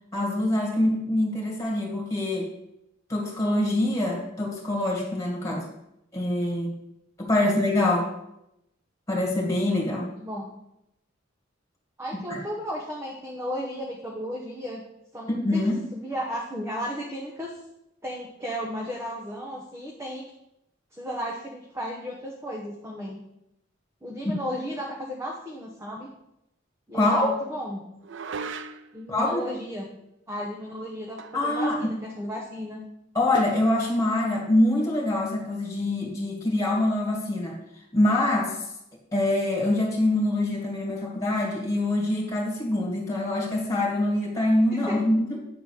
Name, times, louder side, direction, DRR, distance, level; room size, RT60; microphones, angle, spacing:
voice 1, 0.1-2.5 3.1-5.7 6.1-6.8 7.2-8.1 9.1-10.1 12.3-12.4 15.3-15.8 26.9-27.3 29.1-29.5 31.3-31.9 33.1-37.6 37.9-38.7 39.1-45.4, left 1 dB, 15° left, -2 dB, 2.1 m, -24 dB
voice 2, 10.2-10.5 12.0-14.8 15.1-15.6 15.9-17.6 18.0-20.2 20.9-23.2 24.0-26.1 26.9-27.8 28.9-29.9 30.3-32.8 44.7-45.0, equal, 15° right, -2 dB, 0.9 m, -34 dB
sound 1, 28.0-29.0 31.2-31.6 31.8-31.9 33.4-33.7, right 4 dB, 65° right, 0.5 m, -37 dB
8.9 x 4.0 x 6.4 m, 0.84 s
head